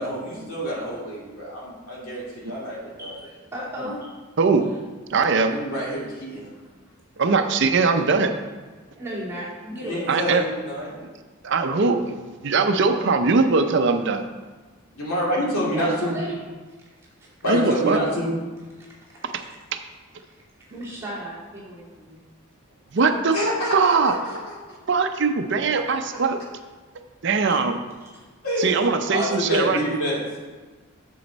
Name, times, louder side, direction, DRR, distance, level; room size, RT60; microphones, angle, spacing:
voice 1, 0.0-3.2 5.5-6.5 9.8-10.9 14.9-16.1 17.4-18.3 23.3-24.8 26.1-26.2 28.4-30.2, equal, 85° left, -5 dB, 2.5 m, -27 dB
voice 2, 3.0-4.1 6.4-6.6 8.9-10.2 15.7-16.4 18.8-19.5 20.7-22.2 27.5-27.6 28.0-28.2, equal, 10° right, -9 dB, 2.4 m, -35 dB
voice 3, 4.4-4.7 5.1-5.6 7.2-8.3 10.1-10.4 11.4-14.2 17.5-18.0 22.9-23.4 23.7-24.2 24.9-26.4 27.2-27.8 28.6-29.8, right 4 dB, 55° right, 7 dB, 0.5 m, -21 dB
8.5 x 7.0 x 4.1 m, 1.3 s
head